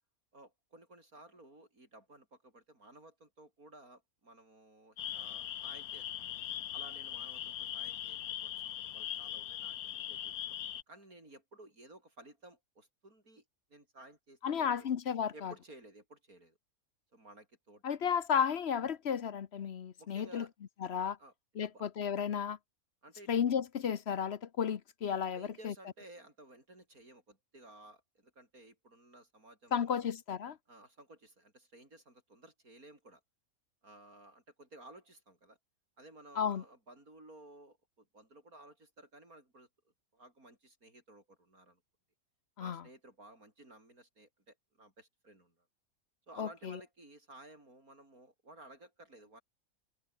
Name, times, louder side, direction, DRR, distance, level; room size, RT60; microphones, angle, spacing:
voice 1, 0.3-6.1 6.7-10.6 10.9-13.4 13.7-14.9 15.3-16.6 17.1-17.8 20.0-20.5 21.2-21.3 21.6-21.8 23.0-23.3 25.3-29.9 30.7-33.2 33.8-35.6 36.0-39.7 40.1-41.8 42.6-45.7 46.3-49.4, right 2 dB, 85° right, 8.3 m, -56 dB
sound 1, 5.0-10.8, left 11 dB, 85° left, 1.3 m, -40 dB
voice 2, 14.4-15.5 17.8-20.5 20.8-21.2 21.6-22.6 23.3-25.7 29.7-30.6 36.4-36.6 42.6-42.8 46.4-46.8, left 7 dB, 55° left, 1.0 m, -33 dB
omnidirectional pair, 1.5 m